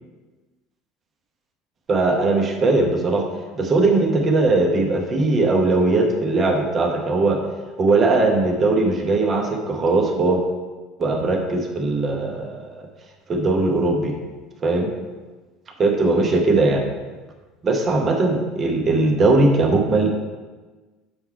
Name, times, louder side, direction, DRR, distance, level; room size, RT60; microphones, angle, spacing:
voice 1, 1.9-3.2 3.6-7.4 7.8-10.4 11.0-12.8 13.3-14.1 14.6-14.9 15.8-16.8 17.6-20.1, right 2 dB, 25° right, 2 dB, 0.8 m, -19 dB
6.9 x 4.6 x 3.8 m, 1.3 s
cardioid pair, 160°, 0 cm